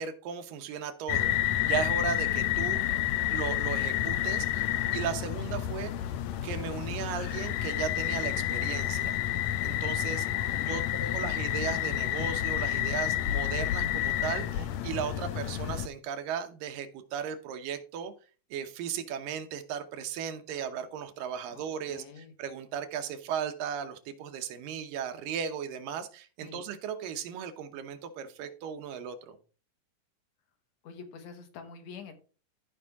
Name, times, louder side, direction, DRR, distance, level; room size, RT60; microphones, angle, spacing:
voice 1, 0.0-2.8 3.3-4.7 4.9-5.9 6.4-9.2 9.6-10.3 10.7-18.1 18.5-29.4, right 8 dB, 90° right, 8 dB, 2.7 m, -36 dB
sound 1, 1.1-15.9, left 12 dB, 85° left, 1.6 m, -30 dB
voice 2, 2.4-3.3 10.3-11.4 21.5-21.6 21.9-22.3 26.4-26.7 30.8-32.1, left 6 dB, 60° left, 7 dB, 2.4 m, -47 dB
14.0 x 5.3 x 3.6 m, 0.38 s
omnidirectional pair, 3.8 m